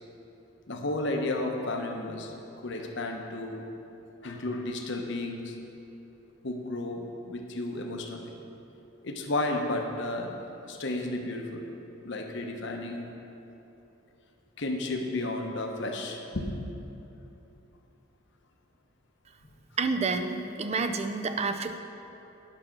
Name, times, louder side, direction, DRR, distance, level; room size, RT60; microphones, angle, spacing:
voice 1, 0.7-2.3 2.6-3.6 4.2-5.6 6.4-8.4 9.0-10.4 10.7-11.6 12.0-13.1 14.6-16.5, left 2 dB, 55° left, 2 dB, 0.8 m, -32 dB
voice 2, 19.8-21.8, right 4 dB, 30° right, 8 dB, 0.4 m, -29 dB
8.9 x 6.1 x 5.9 m, 3.0 s
head